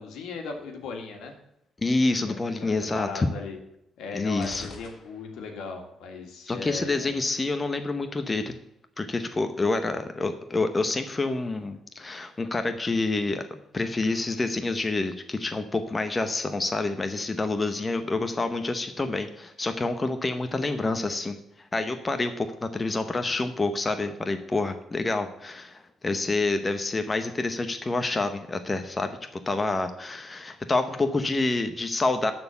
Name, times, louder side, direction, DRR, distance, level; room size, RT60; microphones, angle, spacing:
voice 1, 0.0-1.4 2.3-3.6 4.0-7.2, left 4 dB, 85° left, 4 dB, 1.8 m, -38 dB
voice 2, 1.8-3.3 4.1-4.7 6.5-8.5 9.0-32.3, left 3 dB, 25° left, 8 dB, 0.9 m, -28 dB
sound 1, 4.4-5.7, left 3 dB, 60° left, 1.5 m, -47 dB
12.5 x 4.3 x 6.9 m, 0.77 s
cardioid pair, 90°, 0 cm